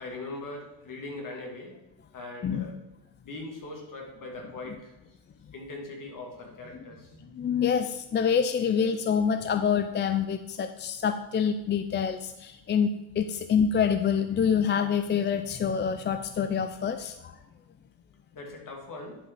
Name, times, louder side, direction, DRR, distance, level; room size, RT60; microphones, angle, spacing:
voice 1, 0.0-1.8 2.1-2.7 3.2-4.9 5.5-7.5 18.3-19.2, left 2 dB, 45° left, 0 dB, 2.6 m, -40 dB
voice 2, 7.4-17.4, left 7 dB, 25° left, 9 dB, 0.3 m, -26 dB
10.5 x 5.0 x 4.8 m, 0.95 s
cardioid pair, 110°, 44 cm